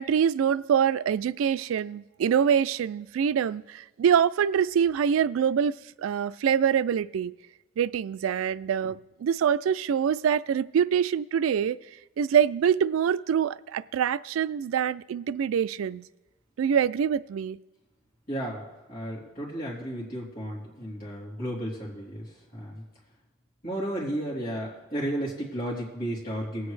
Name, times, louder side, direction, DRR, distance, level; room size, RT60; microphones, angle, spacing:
voice 1, 0.0-7.4 7.8-11.8 12.2-16.1 16.6-17.6, right 8 dB, 90° right, 17 dB, 0.3 m, -25 dB
voice 2, 18.3-22.8 23.6-26.7, right 1 dB, 45° left, -7 dB, 3.2 m, -33 dB
20.5 x 8.1 x 3.3 m, 1.1 s
head